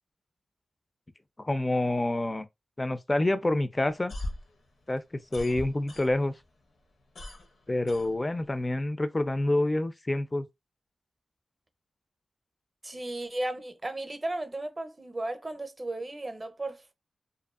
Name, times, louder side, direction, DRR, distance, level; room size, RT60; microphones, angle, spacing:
voice 1, 1.4-2.5 2.8-4.1 4.9-5.0 5.3-6.3 7.7-10.5, left 1 dB, 30° left, 0.4 m, -27 dB
sound 1, 3.9-6.4 6.7-8.7, left 1 dB, 80° left, 0.7 m, -40 dB
voice 2, 12.8-16.9, right 2 dB, 30° right, 0.6 m, -35 dB
2.6 x 2.3 x 2.3 m
cardioid pair, 45°, 0 cm